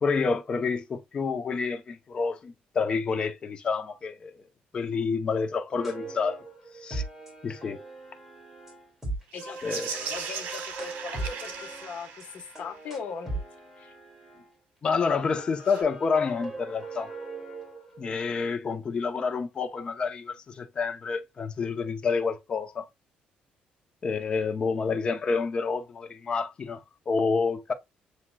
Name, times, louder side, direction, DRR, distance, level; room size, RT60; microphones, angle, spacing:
voice 1, 0.0-4.3 4.7-6.4 6.8-7.0 7.4-7.8 9.6-9.9 14.8-17.1 18.0-22.9 24.0-27.7, left 5 dB, 30° left, 0.6 m, -28 dB
sound 1, 5.8-14.5 15.0-18.2, right 2 dB, 10° right, 2.3 m, -40 dB
sound 2, 9.3-12.8 15.6-15.8, right 6 dB, 80° right, 1.3 m, -38 dB
voice 2, 9.9-13.4 13.8-13.9, left 6 dB, 55° left, 1.1 m, -40 dB
7.2 x 2.9 x 2.2 m
cardioid pair, 140°, 3 cm